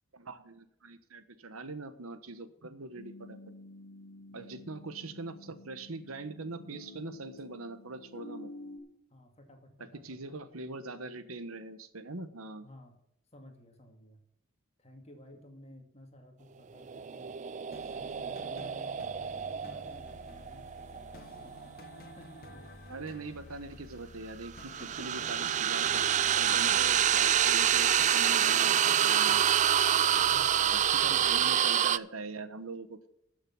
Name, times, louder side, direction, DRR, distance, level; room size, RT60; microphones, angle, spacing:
voice 1, 0.1-3.4 4.3-8.5 10.0-12.7 22.9-24.7 25.0-29.4 30.7-33.1, right 3 dB, 85° right, 11 dB, 1.2 m, -42 dB
sound 1, 3.0-8.8, left 2 dB, 70° left, 1.9 m, -50 dB
voice 2, 4.2-4.8 9.1-10.4 12.6-13.0 13.3-14.3 14.8-17.3 17.9-21.8 22.2-22.7 24.8-25.3 26.7-26.9 30.1-31.2, left 1 dB, 30° left, 3 dB, 2.3 m, -54 dB
sound 2, 16.8-22.0 24.5-32.0, right 10 dB, 35° right, 0.3 m, -27 dB
sound 3, 17.7-31.4, left 1 dB, 45° left, 1.5 m, -51 dB
13.5 x 6.6 x 6.0 m, 0.78 s
head